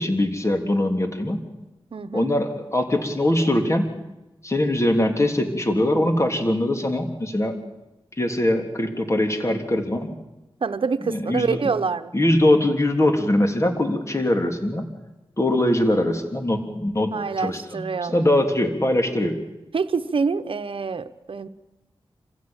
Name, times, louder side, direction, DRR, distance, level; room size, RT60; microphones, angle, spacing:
voice 1, 0.0-1.4 2.1-3.9 4.4-7.6 8.2-10.1 11.1-11.6 12.1-14.9 15.4-17.8 18.1-19.4, left 1 dB, 30° left, 5 dB, 3.4 m, -22 dB
voice 2, 1.9-2.3 10.6-12.1 17.1-18.2 19.7-21.5, right 5 dB, 70° right, 9 dB, 1.0 m, -26 dB
26.0 x 16.0 x 8.9 m, 1.0 s
cardioid pair, 55°, 9 cm